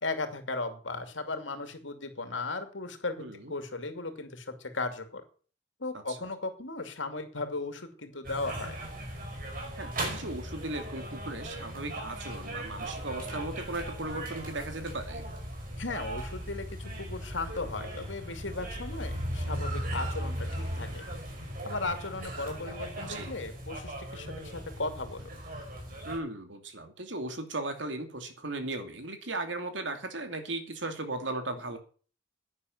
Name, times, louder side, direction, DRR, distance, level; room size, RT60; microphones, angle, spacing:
voice 1, 0.0-5.2 5.8-8.8 15.8-21.0 21.6-25.3, left 3 dB, 85° left, 8 dB, 2.6 m, -36 dB
voice 2, 3.2-3.5 5.9-6.2 9.8-15.2 23.1-23.3 26.0-31.8, right 2 dB, 75° right, 7 dB, 2.7 m, -37 dB
sound 1, 8.2-26.2, right 1 dB, 50° right, 5.3 m, -38 dB
11.0 x 9.7 x 7.7 m, 0.41 s
head